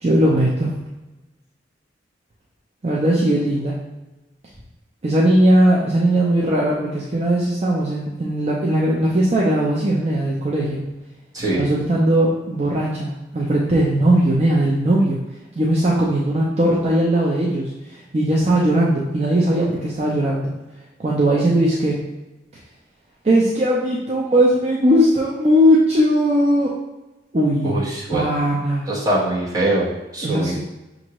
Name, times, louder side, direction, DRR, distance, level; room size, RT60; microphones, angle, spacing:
voice 1, 0.0-0.7 2.8-3.7 5.0-10.8 11.5-15.2 15.6-20.5 21.0-22.0 23.2-26.7 27.3-27.8 28.1-28.9 30.2-30.6, right 1 dB, 35° right, -4 dB, 0.6 m, -18 dB
voice 2, 11.3-11.7 27.6-28.2 28.9-30.6, right 1 dB, 20° right, -7 dB, 1.1 m, -22 dB
6.2 x 2.6 x 3.0 m, 1.1 s
head